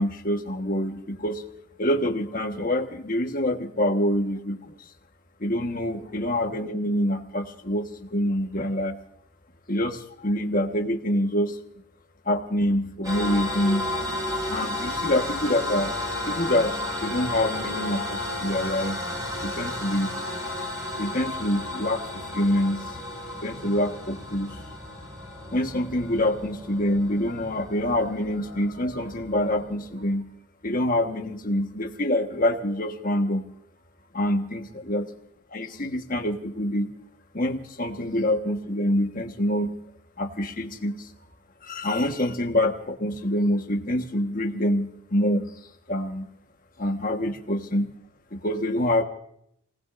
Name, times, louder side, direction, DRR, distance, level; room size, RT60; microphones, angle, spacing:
voice 1, 0.0-1.4 1.8-4.7 5.4-9.0 9.7-11.6 12.2-13.9 14.5-15.9 16.3-19.0 19.4-20.1 21.0-22.0 22.3-22.8 23.4-24.6 25.5-30.2 30.6-33.4 34.1-35.1 35.5-36.9 37.3-39.7 40.2-41.1 41.6-45.5 45.9-46.3 46.8-47.9 48.4-49.0, left 1 dB, 40° left, 4 dB, 1.3 m, -26 dB
sound 1, 13.0-30.1, left 1 dB, 20° right, 4.8 m, -33 dB
27.0 x 19.0 x 2.6 m, 0.70 s
head